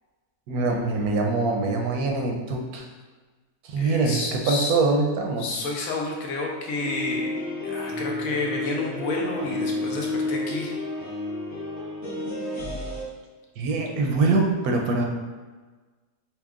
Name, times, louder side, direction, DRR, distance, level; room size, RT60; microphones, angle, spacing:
voice 1, 0.5-2.8 3.6-5.4 13.6-15.0, right 3 dB, 85° right, 1 dB, 1.1 m, -24 dB
voice 2, 3.8-4.7 5.4-7.3 7.6-10.7, left 2 dB, 70° left, -1 dB, 1.0 m, -30 dB
sound 1, 6.8-13.0, left 2 dB, 45° left, 1.4 m, -31 dB
5.7 x 2.3 x 2.4 m, 1.3 s
omnidirectional pair, 1.6 m